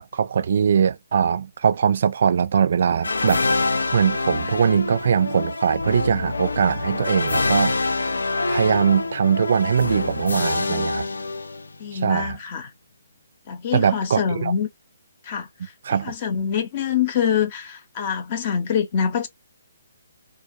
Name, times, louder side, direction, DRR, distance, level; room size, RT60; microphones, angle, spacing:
voice 1, 0.0-3.4 3.9-7.7 8.5-11.1 11.9-12.4 13.7-14.5 15.8-16.1, right 7 dB, 55° right, 0.4 m, -21 dB
sound 1, 3.0-11.9, left 3 dB, 75° left, 0.3 m, -25 dB
voice 2, 11.8-12.7 13.5-14.7 15.3-15.5 15.9-19.3, left 7 dB, 40° left, 0.7 m, -25 dB
2.3 x 2.0 x 2.6 m
figure-of-eight pair, 140°, 0 cm